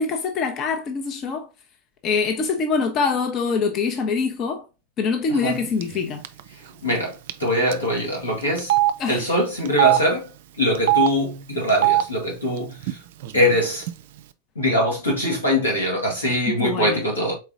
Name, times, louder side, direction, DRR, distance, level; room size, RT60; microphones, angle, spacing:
voice 1, 0.0-1.5 2.0-4.6 5.0-6.2 9.0-9.3 16.5-17.0, left 5 dB, 35° left, 0.7 m, -24 dB
Telephone, 5.8-6.0 6.2-6.4 7.3-7.4 7.7-7.8 8.6-8.9 9.6-10.0 10.7-11.1 11.7-12.0 12.8-12.9 13.2-13.9, right 15 dB, 60° right, 0.4 m, -20 dB
voice 2, 6.8-7.1 7.4-8.7 9.1-10.3 10.6-12.7 13.3-13.8 14.5-17.3, equal, 80° left, 1.7 m, -22 dB
4.3 x 3.9 x 2.4 m
figure-of-eight pair, 85°, 0 cm